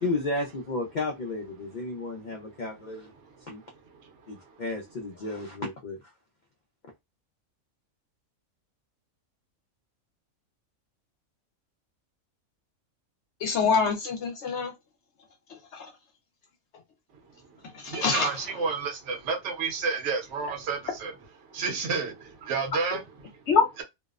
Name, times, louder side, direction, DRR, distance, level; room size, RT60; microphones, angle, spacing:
voice 1, 0.0-3.1 3.5-3.6 4.3-6.1, left 2 dB, 90° left, 0.4 m, -33 dB
voice 2, 1.9-2.6 3.1-4.6 17.1-21.1 21.4-23.5 23.8-23.9, right 5 dB, 65° right, 1.0 m, -33 dB
voice 3, 13.4-14.7 15.7-15.9 17.7-18.3 23.5-23.7, left 5 dB, 65° left, 0.8 m, -24 dB
2.6 x 2.0 x 2.3 m
omnidirectional pair, 1.4 m